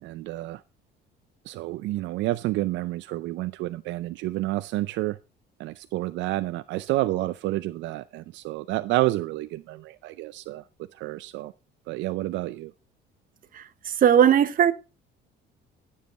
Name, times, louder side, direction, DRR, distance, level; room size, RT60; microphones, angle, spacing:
voice 1, 0.0-0.6 1.5-5.2 5.6-10.6 10.9-11.5 11.9-12.7, right 17 dB, 80° right, 0.5 m, -29 dB
voice 2, 14.0-14.7, right 9 dB, 45° right, 1.1 m, -17 dB
11.0 x 7.4 x 4.2 m
cardioid pair, 115°, 19 cm